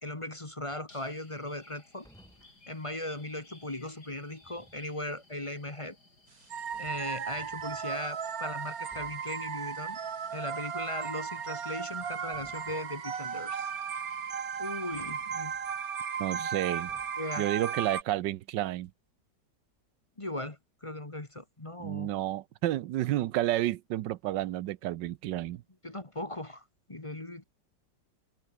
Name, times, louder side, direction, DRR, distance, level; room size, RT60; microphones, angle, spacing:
voice 1, 0.0-2.1 2.7-6.0 6.4-6.5 6.8-10.0 10.3-13.7 14.6-15.5 16.3-16.5 17.2-17.5 20.2-22.1 25.8-27.4, left 1 dB, 20° left, 1.6 m, -38 dB
sound 1, 0.9-15.1, left 2 dB, 65° left, 7.7 m, -60 dB
sound 2, 2.0-2.6 4.3-4.9 6.2-6.3 6.7-7.9 8.4-8.6 8.9-9.4 10.9-11.6 11.9-13.0 14.9-15.9 16.9-17.4, equal, ahead, 8.0 m, -60 dB
sound 3, 6.5-18.0, right 7 dB, 55° right, 1.9 m, -36 dB
voice 2, 16.2-16.9 17.4-18.9 21.8-25.6, right 14 dB, 85° right, 1.4 m, -31 dB
omnidirectional pair, 1.9 m